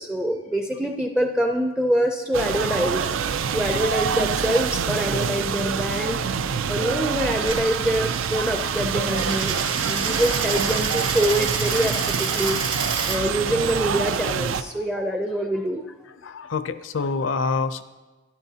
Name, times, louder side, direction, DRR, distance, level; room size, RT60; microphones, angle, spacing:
voice 1, 0.0-3.1 3.5-6.2 6.7-12.6 13.1-15.9, equal, 5° right, 3 dB, 0.4 m, -25 dB
sound 1, 2.3-14.6, right 6 dB, 90° right, 0.4 m, -26 dB
Coin (dropping), 7.4-13.2, right 5 dB, 70° right, 1.6 m, -29 dB
voice 2, 16.2-17.8, left 4 dB, 75° left, 12 dB, 0.5 m, -26 dB
12.0 x 11.0 x 2.8 m, 1.2 s
head